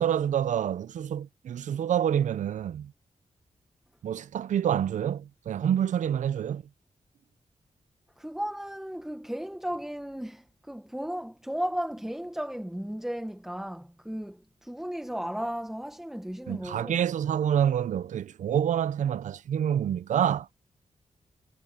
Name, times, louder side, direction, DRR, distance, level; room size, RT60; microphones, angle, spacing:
voice 1, 0.0-2.9 4.0-6.6 16.5-20.5, right 9 dB, 85° right, 0.6 m, -27 dB
voice 2, 8.2-17.0, equal, 5° right, 1.1 m, -35 dB
wide cardioid pair, 110°, 12 cm